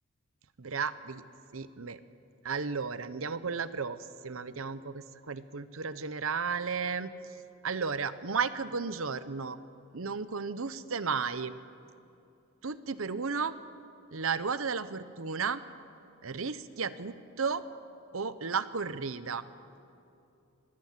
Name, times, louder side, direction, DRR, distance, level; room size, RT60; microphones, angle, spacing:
voice 1, 0.6-1.2 1.5-2.0 2.4-7.1 7.6-9.6 9.9-11.5 12.6-13.5 14.1-15.6 16.2-17.6 18.1-19.4, right 5 dB, 70° right, 14 dB, 0.8 m, -33 dB
25.0 x 21.0 x 7.5 m, 2.7 s
head